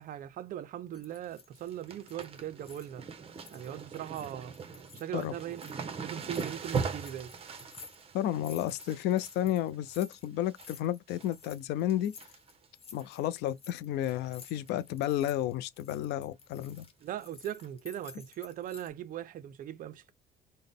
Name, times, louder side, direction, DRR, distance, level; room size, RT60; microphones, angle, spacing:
voice 1, 0.0-3.1 3.5-4.6 4.9-7.3 17.0-20.1, right 11 dB, 55° right, 0.5 m, -40 dB
sound 1, 0.9-3.1 3.4-5.8 6.1-18.9, left 5 dB, 35° left, 0.6 m, -53 dB
sound 2, 0.9-1.3 1.5-10.7 11.1-11.5 11.8-12.7 13.0-13.1 14.1-14.3 14.6-14.7 15.1-15.2 16.7-16.8 17.6-17.7, right 5 dB, 35° right, 0.7 m, -41 dB
voice 2, 8.1-12.1 12.9-16.9, left 12 dB, 85° left, 0.4 m, -32 dB
3.8 x 2.1 x 3.5 m
cardioid pair, 110°, 17 cm